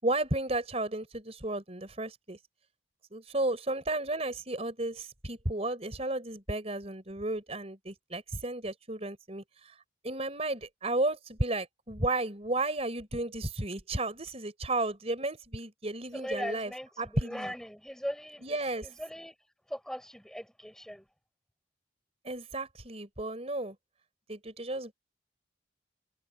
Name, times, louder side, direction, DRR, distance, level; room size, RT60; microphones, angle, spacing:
voice 1, 0.0-2.4 3.1-9.7 10.0-16.7 17.0-17.5 18.4-18.9 22.2-23.8 24.3-24.9, right 2 dB, 35° right, 4.5 m, -33 dB
voice 2, 16.1-18.4 18.8-19.3 19.7-21.0, equal, 5° left, 6.4 m, -39 dB
head